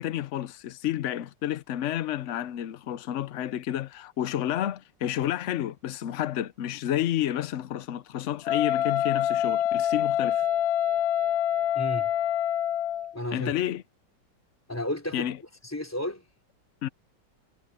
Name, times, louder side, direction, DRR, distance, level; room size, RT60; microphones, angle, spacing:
voice 1, 0.0-10.5 13.3-13.8 15.1-15.4 16.8-16.9, left 12 dB, 80° left, 0.6 m, -30 dB
Wind instrument woodwind instrument, 8.4-13.1, left 10 dB, 65° left, 1.1 m, -26 dB
voice 2, 11.7-12.1 13.1-13.5 14.7-15.3 15.6-16.2, left 1 dB, 10° left, 4.0 m, -32 dB
omnidirectional pair, 2.0 m